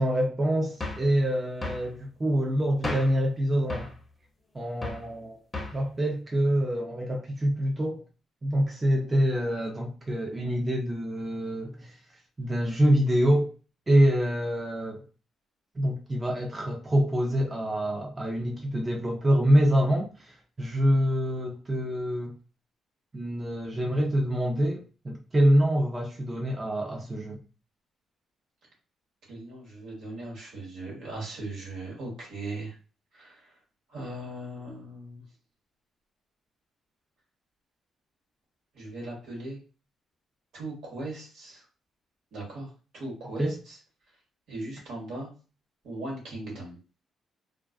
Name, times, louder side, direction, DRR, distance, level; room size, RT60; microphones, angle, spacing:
voice 1, 0.0-3.9 4.5-5.4 5.7-8.0 8.4-12.0 12.4-13.5 13.9-15.0 15.7-22.3 23.1-27.4 43.4-43.6, equal, 25° right, 0.5 m, -26 dB
sound 1, 0.8-1.1 1.6-1.9 2.8-3.2 3.7-4.0 4.8-5.1 5.5-5.8, left 2 dB, 20° left, 0.6 m, -34 dB
voice 2, 29.3-32.7 33.1-33.6 33.9-35.2 38.7-39.6 40.5-41.6 42.3-43.8 44.5-45.3 45.8-46.8, right 2 dB, 75° right, 1.3 m, -38 dB
2.3 x 2.3 x 2.4 m
cardioid pair, 90°, 0 cm